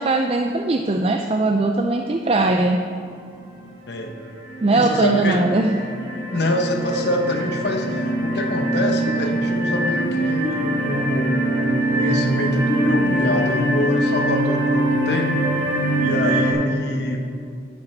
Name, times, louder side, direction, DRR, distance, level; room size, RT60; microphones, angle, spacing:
voice 1, 0.0-2.8 4.6-5.8, right 2 dB, 30° right, 4 dB, 0.4 m, -20 dB
sound 1, 3.3-3.8 4.2-16.5, right 1 dB, 80° right, 2.4 m, -23 dB
voice 2, 4.7-5.4 6.3-15.4 16.0-17.3, left 1 dB, 65° left, 4 dB, 1.0 m, -25 dB
11.0 x 8.6 x 4.5 m, 2.3 s
head